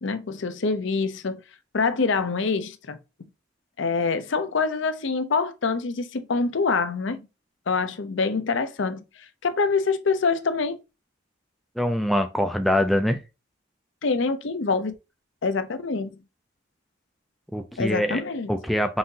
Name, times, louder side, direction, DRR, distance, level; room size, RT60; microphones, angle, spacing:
voice 1, 0.0-1.4 1.7-3.0 3.8-7.3 7.7-10.8 14.0-14.9 15.4-16.2 17.8-18.5, left 4 dB, 60° left, 0.6 m, -25 dB
voice 2, 11.8-13.2 17.5-18.2 18.5-19.0, left 1 dB, ahead, 0.3 m, -24 dB
5.5 x 2.7 x 2.7 m
head